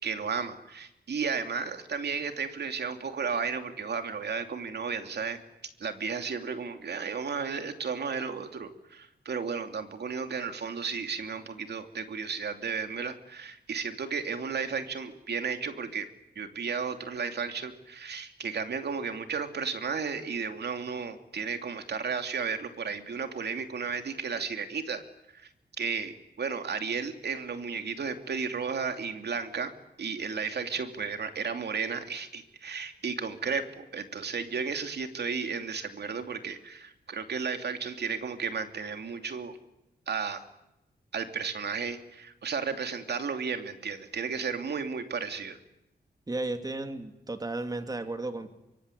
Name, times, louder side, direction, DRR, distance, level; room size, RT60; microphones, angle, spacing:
voice 1, 0.0-5.4 5.8-16.1 16.4-25.0 25.3-25.5 25.8-29.7 30.0-39.6 40.1-40.4 41.1-45.6, right 5 dB, 75° right, 7 dB, 2.8 m, -33 dB
voice 2, 46.3-48.5, right 2 dB, 20° right, 7 dB, 2.7 m, -34 dB
24.5 x 24.0 x 9.9 m, 0.88 s
wide cardioid pair, 110°, 17 cm